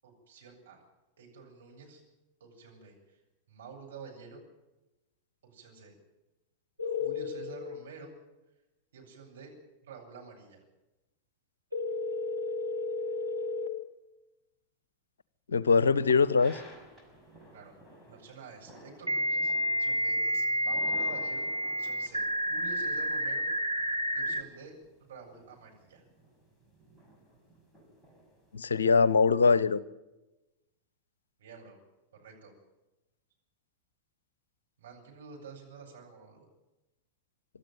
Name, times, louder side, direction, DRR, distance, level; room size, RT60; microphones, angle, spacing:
voice 1, 0.0-0.8 1.2-2.0 2.4-3.2 3.5-4.4 5.4-5.9 6.8-8.1 8.9-9.5 9.8-10.6 17.5-17.7 18.1-23.5 24.1-24.7 25.0-26.0 31.4-31.8 32.1-32.5 34.8-36.5, right 4 dB, 65° right, 0 dB, 7.1 m, -49 dB
sound 1, 6.8-7.7 11.7-13.7 16.3-16.4 19.1-24.4, equal, 90° right, 1.2 m, -30 dB
voice 2, 15.5-16.6 28.5-29.8, left 5 dB, 70° left, 19 dB, 0.8 m, -23 dB
sound 2, 15.7-28.9, equal, 5° right, 6.1 m, -55 dB
26.0 x 13.0 x 9.2 m, 1.0 s
figure-of-eight pair, 90°, 0 cm